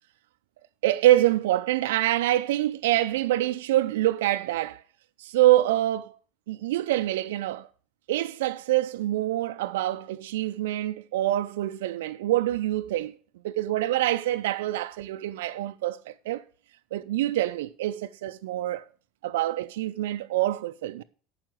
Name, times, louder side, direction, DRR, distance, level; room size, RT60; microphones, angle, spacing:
voice 1, 0.8-4.8 5.2-6.2 6.5-7.7 8.1-13.2 13.4-16.5 16.9-18.9 19.2-21.0, right 14 dB, 75° right, 0.4 m, -25 dB
9.0 x 5.7 x 7.7 m
hypercardioid pair, 75°, 0 cm